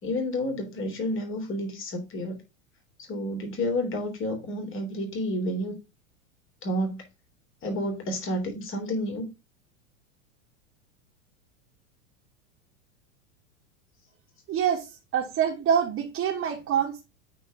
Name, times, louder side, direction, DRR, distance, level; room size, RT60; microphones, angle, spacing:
voice 1, 0.0-2.4 3.1-5.7 6.6-7.0 7.6-9.3, left 1 dB, 30° left, 3.3 m, -30 dB
voice 2, 14.5-14.9 15.1-17.1, right 8 dB, 35° right, 2.5 m, -25 dB
9.1 x 4.4 x 3.7 m
hypercardioid pair, 105°, 39 cm